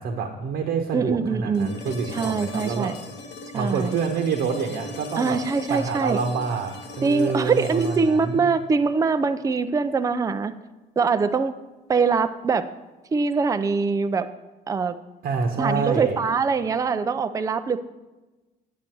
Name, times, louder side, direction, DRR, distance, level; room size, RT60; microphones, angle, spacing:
voice 1, 0.0-3.0 3.5-5.4 5.7-8.4 15.2-16.2, right 5 dB, 70° right, 3 dB, 1.1 m, -27 dB
voice 2, 0.9-1.7 2.1-2.9 3.5-3.9 5.2-6.2 7.0-10.5 11.0-11.5 11.9-12.7 13.1-14.3 14.7-15.0 15.6-17.8, right 4 dB, 20° right, 10 dB, 0.5 m, -23 dB
sound 1, 1.5-9.6 11.7-11.8, left 3 dB, 80° left, 1.5 m, -40 dB
9.5 x 8.3 x 4.5 m, 1.1 s
cardioid pair, 110°, 17 cm